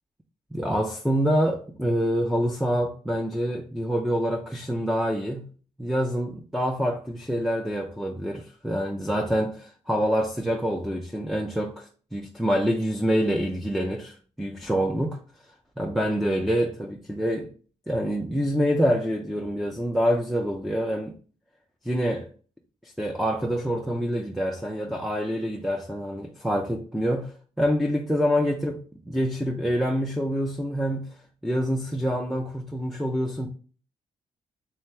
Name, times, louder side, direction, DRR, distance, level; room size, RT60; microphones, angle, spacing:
voice 1, 0.5-5.5 5.8-15.2 15.8-17.5 17.9-21.1 21.8-22.3 22.8-31.2 31.4-33.5, equal, ahead, 0.5 m, -26 dB
3.7 x 2.9 x 3.2 m
cardioid pair, 125°, 13 cm